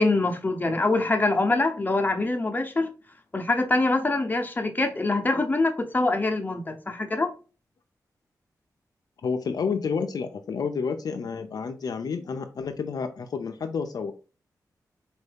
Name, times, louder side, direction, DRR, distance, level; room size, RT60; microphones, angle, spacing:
voice 1, 0.0-2.9 3.3-7.3, left 2 dB, 25° left, 5 dB, 0.8 m, -24 dB
voice 2, 9.2-14.3, left 5 dB, 65° left, 6 dB, 0.4 m, -30 dB
4.4 x 2.6 x 3.4 m, 0.34 s
cardioid pair, 70°, 7 cm